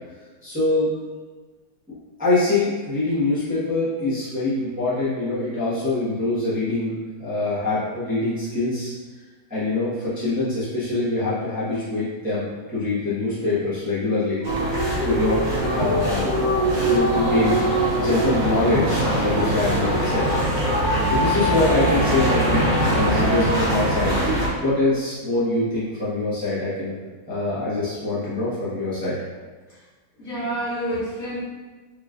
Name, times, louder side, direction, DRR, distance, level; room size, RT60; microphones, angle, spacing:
voice 1, 0.4-0.9 2.2-6.9 7.2-8.9 9.5-14.4 15.0-16.3 16.7-17.6 17.9-20.3 21.1-24.1 24.6-26.9 27.3-29.2, left 2 dB, 5° right, -12 dB, 1.1 m, -24 dB
sound 1, 14.4-24.5, right 1 dB, 35° right, 0.9 m, -22 dB
voice 2, 30.2-31.4, right 1 dB, 50° left, -11 dB, 1.9 m, -28 dB
4.9 x 3.3 x 2.5 m, 1.3 s
omnidirectional pair, 1.9 m